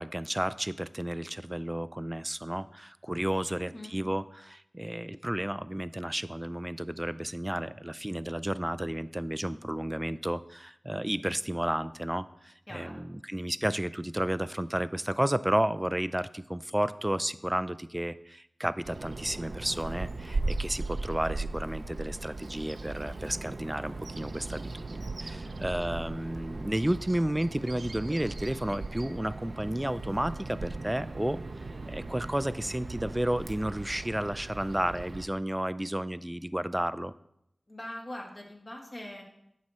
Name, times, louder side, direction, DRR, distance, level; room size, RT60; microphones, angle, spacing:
voice 1, 0.0-13.0 13.3-31.4 31.8-37.1, right 1 dB, 15° right, 15 dB, 0.4 m, -32 dB
voice 2, 3.5-4.0 12.7-13.0 25.4-25.7 37.7-39.2, left 1 dB, 40° left, -1 dB, 2.2 m, -42 dB
Bird vocalization bird call bird song, 18.8-35.3, right 3 dB, 75° right, 0.6 m, -38 dB
9.6 x 6.6 x 4.3 m, 0.77 s
wide cardioid pair, 60°, 0 cm